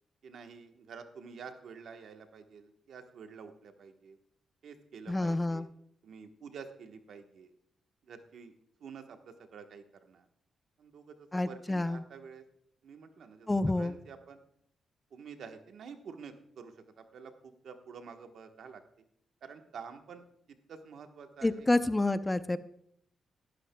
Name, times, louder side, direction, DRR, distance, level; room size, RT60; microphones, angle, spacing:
voice 1, 0.2-4.2 4.6-5.7 6.0-7.5 8.0-8.5 8.8-10.2 10.8-12.4 12.8-14.4 15.1-18.8 19.4-20.2 20.7-21.7, right 6 dB, 75° right, 6 dB, 1.2 m, -49 dB
voice 2, 5.1-5.7 11.3-12.0 13.5-13.9 21.4-22.6, left 2 dB, 15° left, 12 dB, 0.6 m, -28 dB
17.0 x 13.0 x 2.3 m, 0.70 s
cardioid pair, 80°, 0 cm